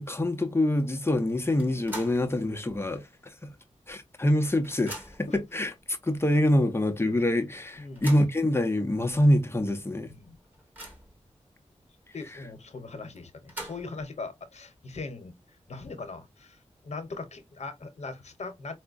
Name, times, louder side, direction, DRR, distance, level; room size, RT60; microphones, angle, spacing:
voice 1, 0.0-3.5 3.9-10.1, left 1 dB, 20° left, 0.6 m, -26 dB
sound 1, 1.6-2.3 2.7-2.8 3.9-4.0 4.3-5.4 6.1-6.2 6.6-6.7 7.7-8.4 9.1-9.2 9.6-9.7 10.2-11.2 13.2-14.1, right 1 dB, 15° right, 1.3 m, -43 dB
voice 2, 7.8-8.1 10.1-10.4 12.1-15.4 15.7-18.8, left 3 dB, 65° left, 0.9 m, -40 dB
4.6 x 2.1 x 2.5 m
wide cardioid pair, 110°, 12 cm